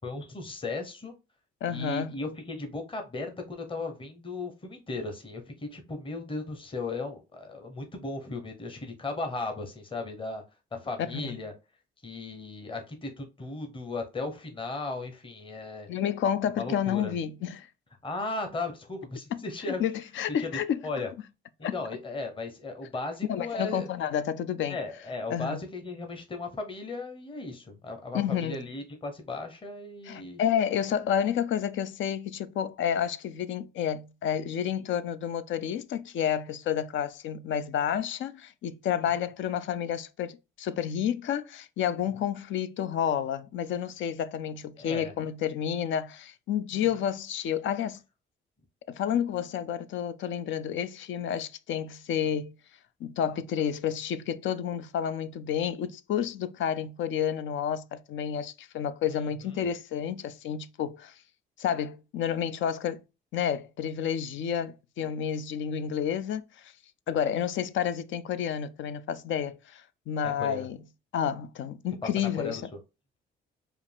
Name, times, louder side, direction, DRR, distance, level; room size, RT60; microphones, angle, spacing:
voice 1, 0.0-1.1 1.7-10.4 10.7-11.5 12.0-15.9 16.6-17.1 18.0-19.8 20.4-20.5 20.8-21.1 21.6-24.1 24.7-30.4 44.8-45.1 46.7-46.8 59.1-59.6 70.2-70.7 72.0-72.1 72.3-72.6, left 3 dB, 25° left, 1.0 m, -36 dB
voice 2, 1.6-2.1 11.1-11.4 15.9-17.7 19.7-20.8 21.6-21.8 23.3-24.8 25.3-25.6 28.1-28.6 30.0-48.0 48.9-52.5 53.0-61.1 61.6-63.0 63.3-66.7 67.1-70.8 71.1-72.6, left 9 dB, 70° left, 0.5 m, -30 dB
4.9 x 2.6 x 3.4 m
cardioid pair, 90°, 20 cm